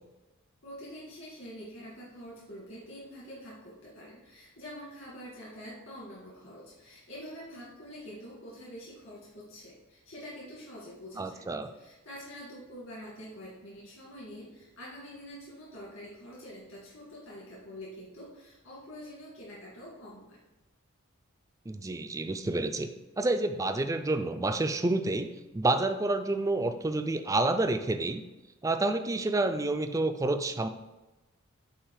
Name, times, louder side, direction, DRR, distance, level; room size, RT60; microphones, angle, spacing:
voice 1, 0.6-11.4 11.7-20.4, equal, 65° left, -7 dB, 2.1 m, -46 dB
voice 2, 11.2-11.7 21.7-22.9 23.2-25.3 25.5-28.2 28.6-30.7, right 2 dB, 15° right, 8 dB, 0.3 m, -29 dB
8.7 x 2.9 x 4.8 m, 1.1 s
head